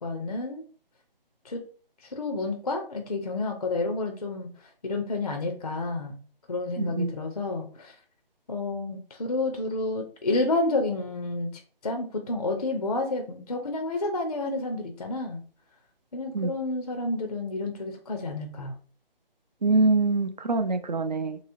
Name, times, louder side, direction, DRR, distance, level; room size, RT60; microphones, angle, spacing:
voice 1, 0.0-0.6 1.4-1.6 2.0-4.5 4.8-6.2 6.5-7.9 8.5-15.4 16.1-18.7, left 2 dB, 40° left, 4 dB, 0.4 m, -30 dB
voice 2, 6.8-7.1 16.3-16.5 19.6-21.4, right 3 dB, 50° right, 9 dB, 0.4 m, -24 dB
2.9 x 2.8 x 2.6 m, 0.42 s
figure-of-eight pair, 160°, 30 cm